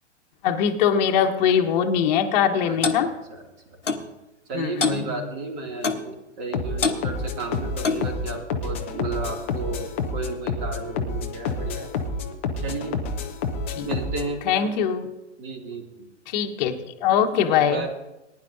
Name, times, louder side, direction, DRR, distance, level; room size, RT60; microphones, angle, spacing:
voice 1, 0.4-3.1 4.5-5.1 13.8-13.9 14.4-15.1 16.3-16.7 17.0-17.9, left 8 dB, 35° left, 4 dB, 1.1 m, -22 dB
voice 2, 2.6-3.8 4.5-11.9 12.6-13.0 13.8-14.7 15.4-16.1 17.3-17.9, right 3 dB, 35° right, 2 dB, 2.5 m, -33 dB
Clock, 2.8-3.0 3.9-4.1 4.8-5.0 5.8-6.1 6.8-7.0 7.8-8.1, left 4 dB, 90° left, 1.1 m, -24 dB
sound 1, 6.5-14.3, left 4 dB, 10° left, 0.3 m, -29 dB
19.0 x 10.5 x 2.7 m, 0.97 s
figure-of-eight pair, 115°, 36 cm